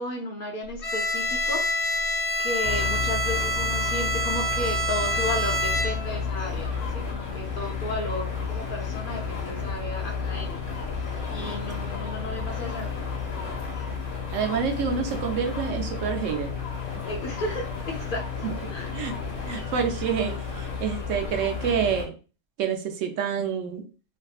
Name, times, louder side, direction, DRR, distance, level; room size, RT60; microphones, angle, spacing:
voice 1, 0.0-1.6 2.4-10.8 11.3-12.9 17.1-18.9, left 2 dB, 55° left, 1 dB, 0.7 m, -34 dB
Bowed string instrument, 0.8-6.2, equal, 35° left, 1.5 m, -27 dB
sound 1, 2.6-22.1, left 5 dB, 85° left, 1.4 m, -32 dB
voice 2, 14.3-16.6 18.4-18.5 18.9-19.1 19.5-22.1 22.6-23.8, right 7 dB, 80° right, 5 dB, 1.0 m, -27 dB
3.4 x 2.7 x 2.3 m, 0.34 s
omnidirectional pair, 1.3 m